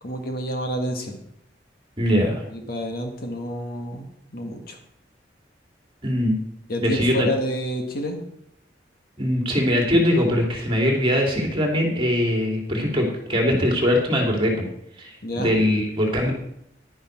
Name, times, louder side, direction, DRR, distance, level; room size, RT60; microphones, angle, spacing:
voice 1, 0.0-1.2 2.5-4.8 6.7-8.2 15.2-15.6, equal, 55° left, 3 dB, 1.8 m, -29 dB
voice 2, 2.0-2.4 6.0-6.4 6.8-7.3 9.2-14.7 15.0-16.3, equal, 30° right, 1 dB, 2.5 m, -21 dB
11.0 x 10.0 x 4.6 m, 0.74 s
head